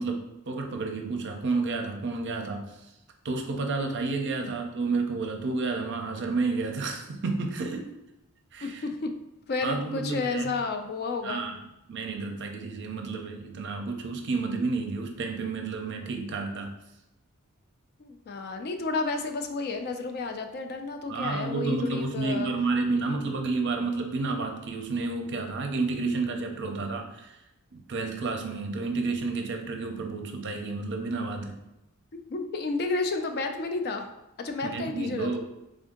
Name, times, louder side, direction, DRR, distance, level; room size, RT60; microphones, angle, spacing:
voice 1, 0.0-2.8 3.2-7.9 8.5-8.8 9.6-10.6 11.2-11.6 11.9-16.7 21.1-27.4 27.7-31.6 34.6-35.4, right 3 dB, 55° right, 4 dB, 0.5 m, -30 dB
voice 2, 8.6-9.1 9.5-11.4 18.0-22.5 32.1-34.1 34.4-35.4, left 3 dB, 45° left, 6 dB, 0.4 m, -31 dB
3.5 x 2.6 x 3.7 m, 0.91 s
head